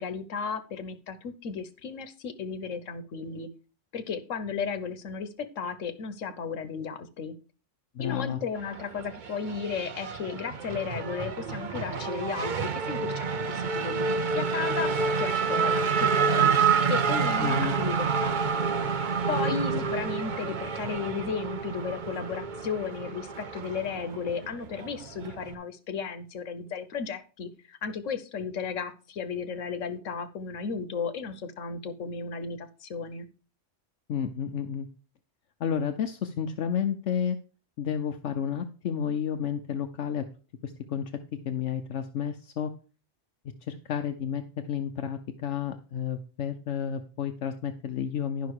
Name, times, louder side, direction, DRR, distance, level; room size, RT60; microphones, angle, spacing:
voice 1, 0.0-3.5 3.9-5.3 5.6-7.3 8.0-14.0 14.3-16.5 16.9-18.4 19.3-33.3, left 5 dB, 90° left, 11 dB, 1.3 m, -34 dB
voice 2, 7.9-8.4 17.4-17.7 19.7-19.8 34.1-34.9 35.6-37.4 37.8-40.2 40.6-41.0 41.4-42.7 43.7-44.4 44.7-48.5, left 8 dB, 70° left, 8 dB, 1.0 m, -31 dB
Race car auto racing / Accelerating revving vroom, 8.6-25.5, right 5 dB, 45° right, 0.8 m, -28 dB
11.5 x 5.8 x 4.7 m, 0.36 s
omnidirectional pair, 1.3 m